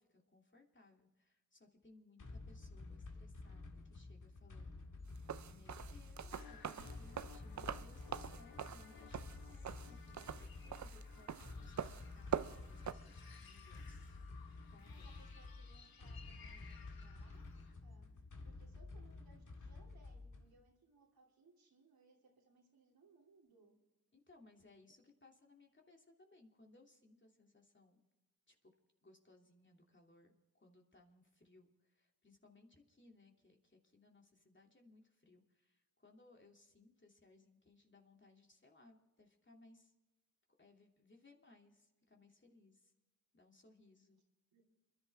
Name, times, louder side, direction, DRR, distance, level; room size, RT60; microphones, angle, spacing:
voice 1, 0.0-4.8 5.1-14.2 14.7-15.1 24.1-28.0 28.5-28.7 29.0-39.9 40.6-42.9 43.3-44.2, left 2 dB, 30° left, 1 dB, 2.9 m, -66 dB
sound 1, 2.2-20.6, left 3 dB, 60° left, 2.0 m, -52 dB
sound 2, 5.2-12.9, right 8 dB, 55° right, 0.6 m, -44 dB
sound 3, 6.3-17.7, left 6 dB, 80° left, 1.7 m, -61 dB
voice 2, 14.8-18.1 18.4-23.7 44.5-44.6, right 3 dB, 80° right, 0 dB, 2.9 m, -68 dB
28.5 x 11.0 x 3.6 m, 1.1 s
cardioid pair, 50°, 35 cm